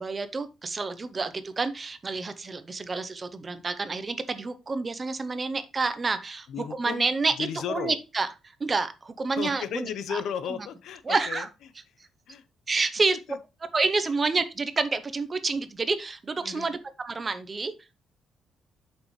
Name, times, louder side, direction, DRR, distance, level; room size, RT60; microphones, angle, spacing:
voice 1, 0.0-7.3 7.7-8.3 8.6-10.2 11.1-11.5 12.7-13.2 13.7-17.7, right 4 dB, 20° right, 0.7 m, -28 dB
voice 2, 6.5-7.1 7.4-7.9 9.4-11.5 12.3-12.4 13.1-13.4 16.4-16.7, left 8 dB, 70° left, 0.8 m, -34 dB
8.3 x 6.2 x 3.2 m
cardioid pair, 170°, 0 cm